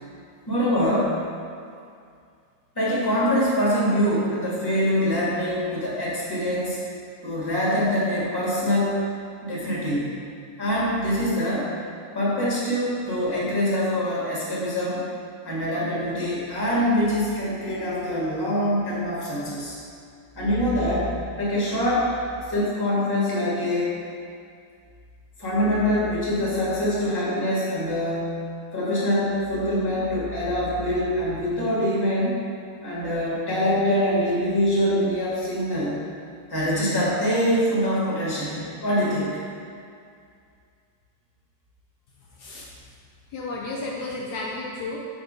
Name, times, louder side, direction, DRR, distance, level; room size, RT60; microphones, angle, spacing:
voice 1, 0.5-1.1 2.7-6.8 7.2-9.0 9.4-10.1 10.6-11.7 12.1-15.0 15.4-19.7 20.4-22.1 22.5-23.9 25.4-28.3 28.7-32.4 32.8-36.0 36.5-39.4, equal, 15° left, -7 dB, 1.2 m, -24 dB
voice 2, 43.3-45.0, left 2 dB, 70° left, -3 dB, 1.1 m, -32 dB
5.3 x 3.7 x 4.9 m, 2.3 s
omnidirectional pair, 1.9 m